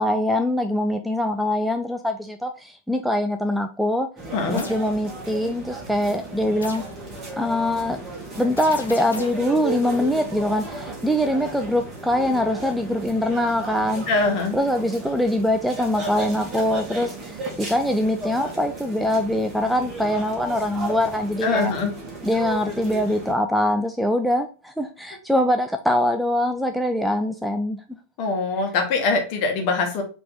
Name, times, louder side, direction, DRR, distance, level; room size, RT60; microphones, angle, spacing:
voice 1, 0.0-4.1 4.5-6.8 7.4-8.0 8.4-14.0 14.5-21.7 22.2-27.8, left 1 dB, ahead, 6 dB, 0.3 m, -23 dB
sound 1, 4.2-23.3, right 2 dB, 20° right, 1.4 m, -35 dB
voice 2, 4.3-4.7 14.1-14.6 21.4-21.9 28.2-30.0, left 3 dB, 45° left, 3 dB, 1.1 m, -23 dB
sound 2, 4.6-4.9 6.6-7.0 8.6-9.5, left 4 dB, 75° left, 0.7 m, -37 dB
3.8 x 2.9 x 3.7 m, 0.35 s
figure-of-eight pair, 90°, 0 cm